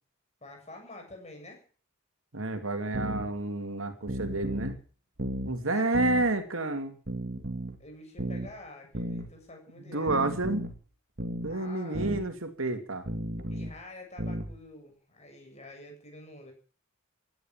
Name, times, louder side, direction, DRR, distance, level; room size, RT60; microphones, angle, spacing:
voice 1, 0.4-1.6 5.7-6.0 7.8-10.4 11.5-12.1 13.5-16.5, left 2 dB, 30° left, 3 dB, 7.5 m, -48 dB
voice 2, 2.3-4.8 5.5-7.0 9.9-10.6 11.4-13.1, right 2 dB, 70° right, 8 dB, 2.6 m, -29 dB
sound 1, 2.9-3.3 4.1-4.8 5.2-5.5 5.9-6.3 7.1-7.8 8.2-8.5 8.9-9.3 10.1-10.8 11.2-11.5 11.9-12.2 13.1-13.7 14.2-14.5, right 1 dB, 50° right, 2.5 m, -34 dB
16.5 x 11.5 x 7.4 m, 0.40 s
head